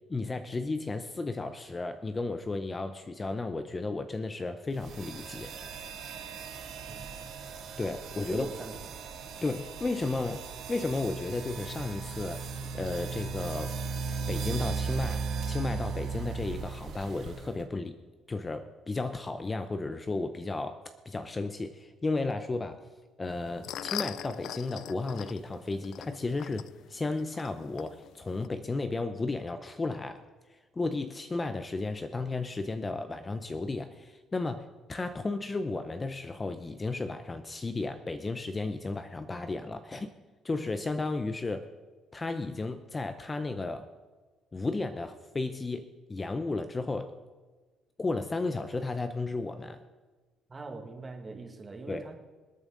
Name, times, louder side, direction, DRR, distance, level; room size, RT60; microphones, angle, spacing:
voice 1, 0.1-5.5 7.8-8.5 9.4-12.4 12.7-13.8 14.3-18.0 18.3-22.8 23.2-30.2 30.5-40.1 40.4-41.7 42.1-43.9 44.5-47.1 48.0-49.8 51.9-52.1, left 3 dB, 20° left, 9 dB, 0.7 m, -34 dB
sound 1, 4.8-17.6, right 5 dB, 65° right, 3.6 m, -37 dB
voice 2, 8.3-8.9 50.5-52.1, right 3 dB, 25° right, 4 dB, 1.9 m, -41 dB
sound 2, 23.3-28.5, left 11 dB, 70° left, 0.4 m, -42 dB
26.5 x 9.0 x 3.9 m, 1.3 s
cardioid pair, 125°, 0 cm